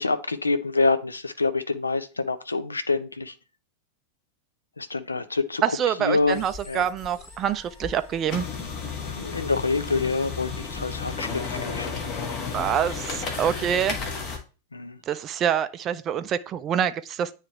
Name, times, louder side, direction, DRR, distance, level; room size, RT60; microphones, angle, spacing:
voice 1, 0.0-3.3 4.8-6.8 9.0-12.1 14.7-15.0, left 3 dB, 80° left, 0.5 m, -27 dB
voice 2, 5.6-8.5 12.5-14.0 15.1-17.3, right 9 dB, 30° right, 0.4 m, -26 dB
sound 1, 6.2-14.4, left 5 dB, 35° left, 1.3 m, -33 dB
9.4 x 3.2 x 3.1 m
figure-of-eight pair, 90°, 0 cm